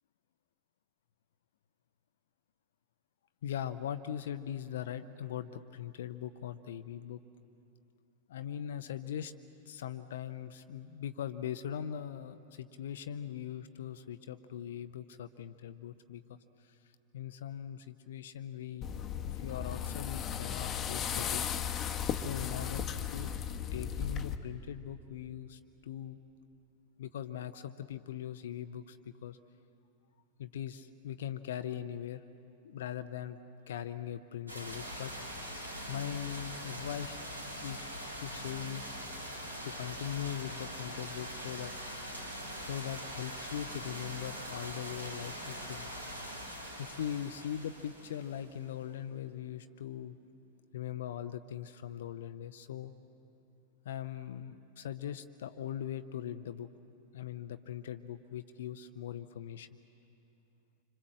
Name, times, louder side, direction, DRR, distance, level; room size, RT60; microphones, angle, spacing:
voice 1, 3.4-7.2 8.3-9.3 9.7-16.8 17.1-18.9 19.2-21.4 22.1-23.3 23.7-26.2 27.0-29.4 30.4-32.2 32.6-33.4 33.7-35.1 35.9-37.2 37.6-37.9 38.2-38.9 39.6-41.7 42.6-45.9 46.8-50.2 50.7-52.9 53.8-56.7 57.1-59.7, left 10 dB, 60° left, 10 dB, 0.8 m, -40 dB
sound 1, 18.8-24.4, left 8 dB, 25° left, 1.3 m, -36 dB
sound 2, 34.5-48.7, equal, 85° right, 6.1 m, -43 dB
27.0 x 26.0 x 7.7 m, 2.7 s
figure-of-eight pair, 90°, 0 cm